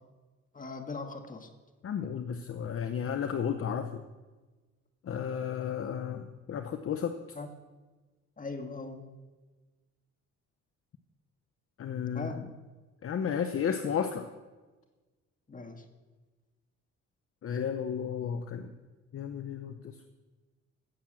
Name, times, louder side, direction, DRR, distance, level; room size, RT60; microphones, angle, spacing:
voice 1, 0.5-1.5 7.4-7.5 8.4-9.0 12.1-12.4 15.5-15.8, left 3 dB, 25° left, 5 dB, 1.7 m, -39 dB
voice 2, 1.8-3.9 5.0-7.1 11.8-12.3 13.0-14.3 17.4-18.7 19.1-20.1, left 7 dB, 45° left, 8 dB, 0.8 m, -33 dB
16.5 x 7.4 x 6.3 m, 1.3 s
cardioid pair, 90°, 30 cm